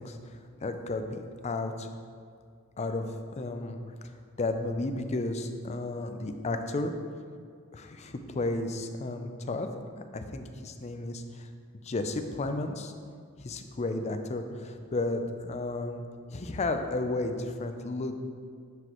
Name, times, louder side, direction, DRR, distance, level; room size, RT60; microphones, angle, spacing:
voice 1, 0.0-1.9 2.8-3.1 3.3-3.8 4.4-6.9 7.7-9.7 10.1-11.5 11.8-12.9 13.4-16.0 16.3-18.2, left 2 dB, 30° left, 7 dB, 0.4 m, -33 dB
9.5 x 5.0 x 3.0 m, 2.1 s
head